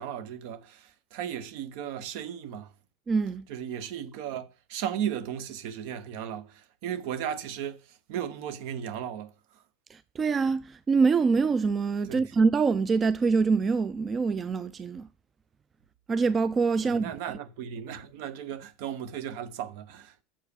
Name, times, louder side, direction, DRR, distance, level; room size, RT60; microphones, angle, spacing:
voice 1, 0.0-2.7 3.5-9.3 12.1-12.2 16.8-20.2, right 9 dB, 65° right, 0.9 m, -36 dB
voice 2, 3.1-3.5 9.9-15.1 16.1-17.1, right 4 dB, 30° right, 0.4 m, -25 dB
7.2 x 4.8 x 6.9 m
hypercardioid pair, 85°, 0 cm